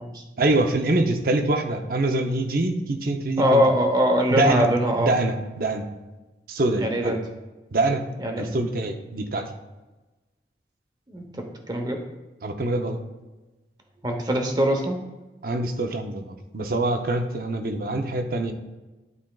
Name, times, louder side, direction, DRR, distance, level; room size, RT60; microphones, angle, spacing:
voice 1, 0.4-3.6 4.3-4.7 5.0-5.9 6.5-7.2 7.7-8.1 8.4-9.5 12.4-13.0 15.4-18.5, right 2 dB, 55° right, 5 dB, 0.6 m, -24 dB
voice 2, 3.4-5.1 6.8-7.3 8.2-8.5 11.1-12.0 14.0-15.0, equal, 25° right, 3 dB, 0.9 m, -22 dB
11.0 x 4.4 x 2.3 m, 1.1 s
head